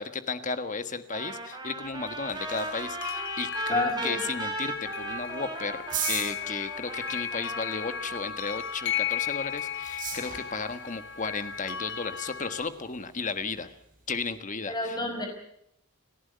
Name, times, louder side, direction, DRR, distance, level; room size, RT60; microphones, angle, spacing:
voice 1, 0.0-5.8 6.1-13.7 14.1-15.0, left 4 dB, 35° left, 10 dB, 1.5 m, -34 dB
Trumpet, 1.1-8.1, right 2 dB, 20° right, 3.9 m, -37 dB
sound 1, 1.8-14.4, right 6 dB, 40° right, 8.0 m, -43 dB
sound 2, 2.4-12.6, left 8 dB, 55° left, 1.7 m, -35 dB
voice 2, 3.7-4.2 14.7-15.3, left 2 dB, 20° left, 3 dB, 5.6 m, -29 dB
30.0 x 11.0 x 9.4 m, 0.74 s
head